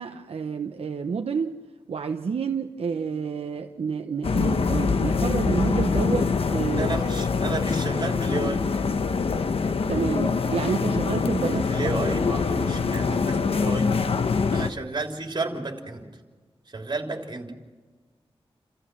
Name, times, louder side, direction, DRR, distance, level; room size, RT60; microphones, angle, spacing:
voice 1, 0.0-1.6 1.9-6.9 9.9-12.0, right 5 dB, 85° right, 5 dB, 0.9 m, -29 dB
sound 1, 4.2-14.7, left 5 dB, 75° left, 1.0 m, -24 dB
voice 2, 6.8-8.7 11.4-14.2 14.5-16.1 16.7-17.5, right 3 dB, 50° right, 2 dB, 3.5 m, -32 dB
29.5 x 15.0 x 6.2 m, 1.4 s
wide cardioid pair, 80°, 10 cm